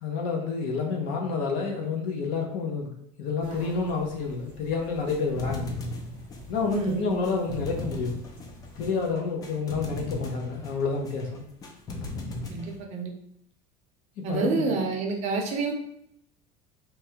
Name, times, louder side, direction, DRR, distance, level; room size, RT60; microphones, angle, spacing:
voice 1, 0.0-2.9 3.2-5.7 6.5-8.2 8.8-11.4 14.2-14.8, left 4 dB, 60° left, 1 dB, 0.7 m, -29 dB
sound 1, 3.4-9.1, left 1 dB, 90° left, 1.4 m, -48 dB
sound 2, 4.7-12.8, left 2 dB, 20° left, 0.4 m, -38 dB
voice 2, 6.7-7.2 12.5-13.1 14.2-15.7, right 4 dB, 45° right, 2 dB, 0.6 m, -28 dB
3.1 x 2.3 x 2.8 m, 0.75 s
cardioid pair, 155°, 16 cm